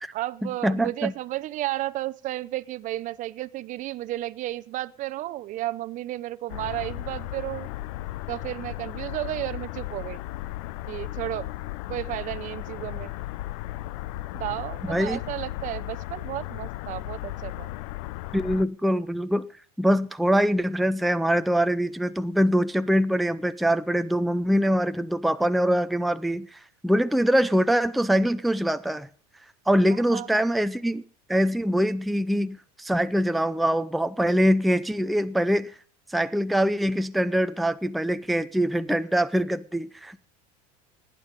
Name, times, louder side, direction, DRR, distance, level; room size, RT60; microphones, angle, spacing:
voice 1, 0.1-7.7 8.3-10.2 10.9-11.5 11.9-13.1 14.3-17.7 29.9-30.5, right 15 dB, 45° right, 0.7 m, -33 dB
voice 2, 0.6-1.1 14.9-15.2 18.3-19.5 19.8-29.1 29.7-31.0 31.3-35.7 36.1-40.2, equal, ahead, 0.5 m, -23 dB
sound 1, 6.5-18.7, left 16 dB, 75° left, 0.6 m, -35 dB
18.5 x 9.1 x 5.3 m
supercardioid pair, 125°, 18 cm